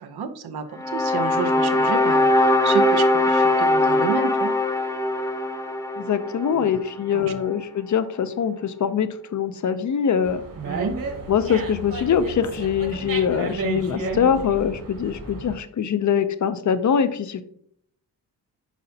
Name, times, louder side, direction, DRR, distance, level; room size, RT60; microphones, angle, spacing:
voice 1, 0.0-4.5 6.5-6.8 7.1-7.3 10.7-10.9, right 6 dB, 85° right, 8 dB, 0.9 m, -30 dB
sound 1, 0.8-7.0, left 1 dB, 10° left, 0.9 m, -21 dB
voice 2, 6.0-10.4 11.3-17.4, left 7 dB, 50° left, 12 dB, 0.7 m, -23 dB
Dog, 10.2-15.6, right 3 dB, 55° right, 1.8 m, -32 dB
9.2 x 5.5 x 2.8 m, 0.66 s
cardioid pair, 95°, 37 cm